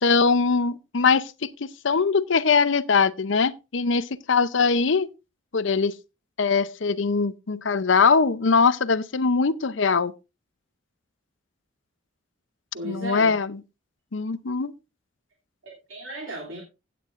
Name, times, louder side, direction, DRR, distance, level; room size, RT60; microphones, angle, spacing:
voice 1, 0.0-5.1 5.5-5.9 6.4-10.1 12.8-13.6 14.1-14.7, left 5 dB, 65° left, 0.7 m, -22 dB
voice 2, 12.7-13.3 15.6-16.6, right 1 dB, 90° right, 2.9 m, -35 dB
16.0 x 9.4 x 2.5 m
head